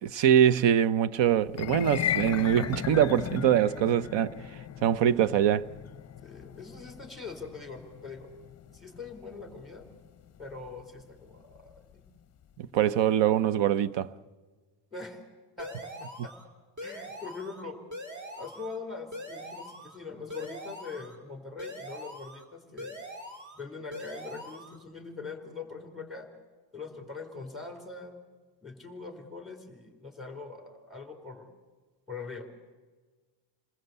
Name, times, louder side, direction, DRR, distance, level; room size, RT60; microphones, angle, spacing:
voice 1, 0.0-4.3 4.8-5.7 12.6-14.1, right 10 dB, 60° right, 1.0 m, -23 dB
sound 1, 1.5-11.8, left 10 dB, 30° left, 0.7 m, -37 dB
voice 2, 6.2-8.3 8.7-9.8 10.4-12.0 14.9-15.2 15.6-16.3 16.8-17.8 18.3-23.0 23.5-26.3 26.7-28.2 28.6-31.5 32.1-32.5, left 4 dB, ahead, 4.3 m, -42 dB
sound 2, 15.6-16.4 16.8-17.6 17.9-18.8 19.1-20.0 20.3-21.2 21.6-22.4 22.8-23.6 23.9-24.8, equal, 35° right, 3.8 m, -42 dB
29.0 x 20.5 x 8.1 m
cardioid pair, 155°, 50 cm